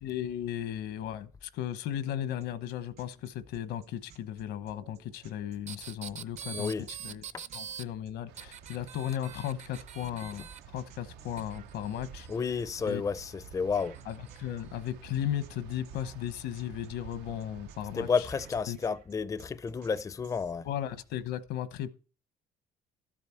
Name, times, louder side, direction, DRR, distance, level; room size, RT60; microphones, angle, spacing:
voice 1, 0.0-6.7 7.0-7.2 7.5-12.3 12.9-13.0 14.1-18.3 18.7-18.8 20.6-21.9, left 11 dB, 85° left, 1.0 m, -36 dB
sound 1, 2.4-20.5, right 9 dB, 70° right, 2.5 m, -58 dB
sound 2, 5.7-7.8 8.4-10.6 11.4-12.9 13.8-14.4 15.2-15.3, right 8 dB, 45° right, 0.6 m, -44 dB
voice 2, 6.5-6.8 7.3-7.4 12.3-13.9 17.9-20.7, left 5 dB, 20° left, 0.4 m, -31 dB
sound 3, 8.3-18.6, right 9 dB, 90° right, 0.7 m, -51 dB
13.0 x 7.6 x 4.4 m
cardioid pair, 110°, 17 cm